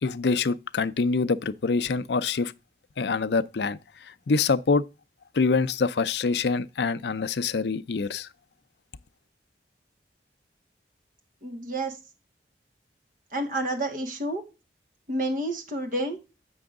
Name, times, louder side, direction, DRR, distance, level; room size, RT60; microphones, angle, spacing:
voice 1, 0.0-2.5 3.0-3.8 4.3-4.8 5.3-8.3, left 4 dB, 70° left, 0.5 m, -25 dB
voice 2, 11.4-12.0 13.3-14.4 15.1-16.2, right 1 dB, 50° right, 2.2 m, -29 dB
7.8 x 6.3 x 3.6 m
head